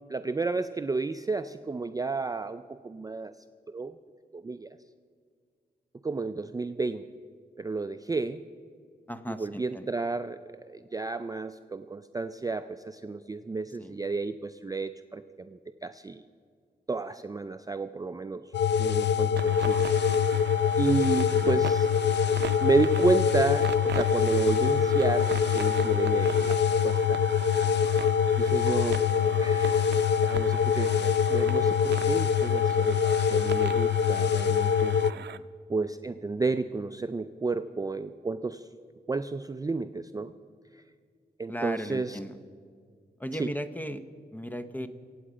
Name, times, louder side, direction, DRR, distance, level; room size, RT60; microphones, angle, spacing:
voice 1, 0.1-3.3 3.7-3.9 4.3-4.7 6.0-7.1 7.6-8.4 9.3-10.4 10.7-16.3 16.9-18.4 18.8-21.9 22.6-27.2 28.4-29.1 29.4-35.0 35.7-38.7 39.1-40.3 41.4-42.2 43.3-43.5, right 3 dB, 20° right, 10 dB, 0.4 m, -31 dB
voice 2, 9.1-9.9 13.8-13.9 21.3-21.6 29.2-29.5 35.1-35.4 41.5-42.4 43.2-44.0 44.3-44.9, equal, 10° left, 10 dB, 0.7 m, -37 dB
sound 1, 18.5-35.1, left 8 dB, 90° left, 0.4 m, -24 dB
sound 2, 19.4-35.4, right 8 dB, 85° right, 0.5 m, -40 dB
25.0 x 8.6 x 5.0 m, 2.1 s
wide cardioid pair, 115°, 17 cm